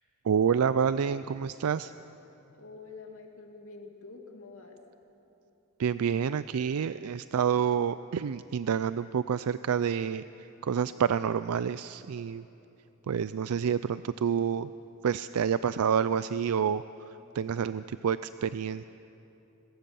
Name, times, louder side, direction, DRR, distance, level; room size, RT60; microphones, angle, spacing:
voice 1, 0.2-1.9 5.8-12.4 13.1-14.7 15.0-16.8 17.3-18.8, right 7 dB, 90° right, 14 dB, 0.4 m, -28 dB
voice 2, 2.5-4.8, left 3 dB, 70° left, 1 dB, 2.4 m, -47 dB
22.0 x 21.0 x 6.9 m, 2.9 s
head